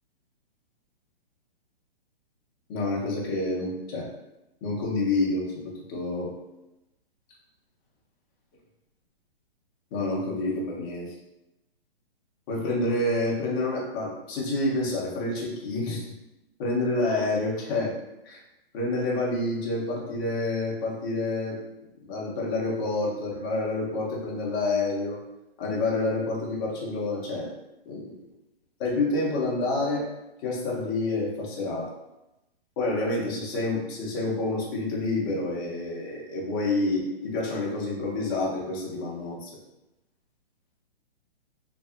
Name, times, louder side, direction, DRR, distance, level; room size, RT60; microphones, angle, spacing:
voice 1, 2.7-4.1 4.6-6.3 9.9-11.1 12.5-16.1 16.6-17.9 18.2-18.4 18.7-21.6 22.0-25.2 25.6-27.5 27.9-28.1 28.8-30.0 30.4-31.9 32.8-39.5, left 2 dB, 20° left, -4 dB, 0.5 m, -28 dB
2.7 x 2.3 x 2.4 m, 0.94 s
hypercardioid pair, 145°, 31 cm